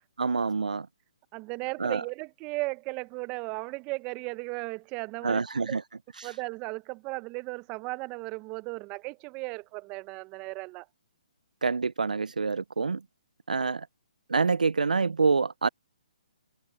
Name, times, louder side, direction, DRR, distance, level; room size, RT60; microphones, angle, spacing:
voice 1, 0.2-0.9 1.8-2.0 5.2-5.8 6.2-6.3 11.6-13.0 13.5-13.9 14.3-15.7, right 4 dB, 90° right, 0.4 m, -26 dB
voice 2, 1.3-5.8 6.2-10.9, right 26 dB, 25° right, 0.6 m, -36 dB
hypercardioid pair, 140°, 4 cm